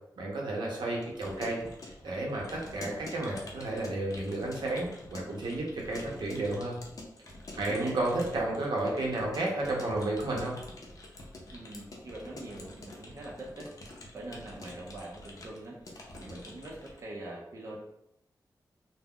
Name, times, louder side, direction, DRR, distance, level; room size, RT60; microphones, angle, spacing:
voice 1, 0.2-1.6 2.0-6.8 7.6-10.6, right 2 dB, 80° right, -2 dB, 0.7 m, -32 dB
Keyboard (musical) / Computer keyboard, 0.9-17.0, left 1 dB, 50° left, 0.5 m, -47 dB
voice 2, 7.6-7.9 11.5-17.8, right 1 dB, 40° right, -4 dB, 0.5 m, -44 dB
2.3 x 2.0 x 3.5 m, 0.79 s
wide cardioid pair, 145°, 7 cm